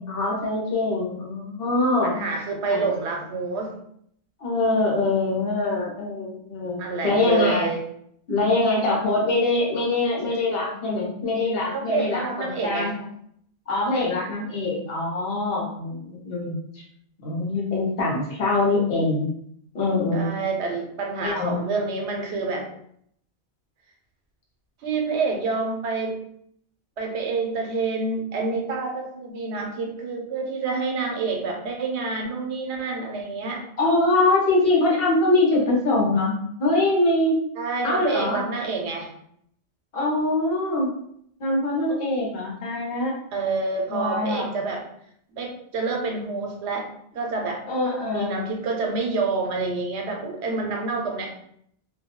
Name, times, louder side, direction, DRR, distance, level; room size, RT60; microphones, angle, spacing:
voice 1, 0.0-2.1 2.6-2.8 4.4-7.7 8.3-12.9 13.7-16.8 17.2-19.3 19.7-20.3 21.2-21.7 33.8-37.4 37.8-38.4 39.9-40.9 41.4-43.2 43.9-44.5 47.7-48.4, left 2 dB, 60° left, -2 dB, 0.9 m, -23 dB
voice 2, 2.0-3.7 6.8-7.8 11.7-12.9 20.1-22.7 24.8-26.2 27.0-33.6 37.6-39.1 43.3-44.8 45.3-46.9 47.1-47.6 48.1-51.3, right 4 dB, 80° right, 1 dB, 0.8 m, -28 dB
2.2 x 2.1 x 2.9 m, 0.68 s
omnidirectional pair, 1.1 m